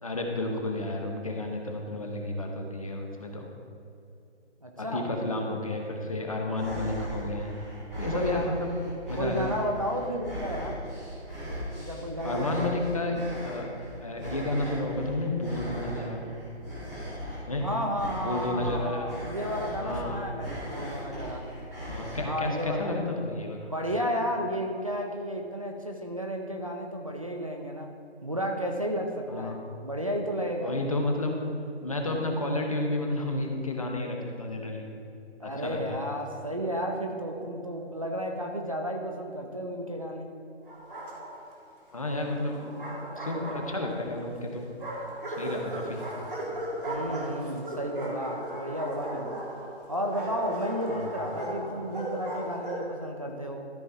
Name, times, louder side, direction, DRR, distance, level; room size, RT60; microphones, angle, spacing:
voice 1, 0.0-3.5 4.8-7.5 8.0-8.8 9.1-9.6 12.2-13.8 14.0-16.2 17.5-17.7 18.2-19.1 19.8-20.2 21.9-23.7 29.3-29.6 30.6-31.3 31.8-34.9 35.4-36.0 41.9-42.9 43.1-44.7 45.4-46.0 50.9-51.1, left 2 dB, 30° left, 1 dB, 0.9 m, -31 dB
voice 2, 4.6-5.1 8.1-8.6 9.2-10.8 11.8-12.7 17.6-21.5 22.2-22.9 23.6-27.9 28.2-30.8 35.4-40.3 46.9-49.4 49.9-53.7, equal, 30° right, 1 dB, 0.6 m, -32 dB
sound 1, 6.6-22.2, equal, 15° right, 2.2 m, -38 dB
Bark, 40.7-41.6 42.5-44.1 44.8-52.9, right 1 dB, 50° right, 2.4 m, -37 dB
13.0 x 5.2 x 4.6 m, 2.7 s
hypercardioid pair, 175°, 33 cm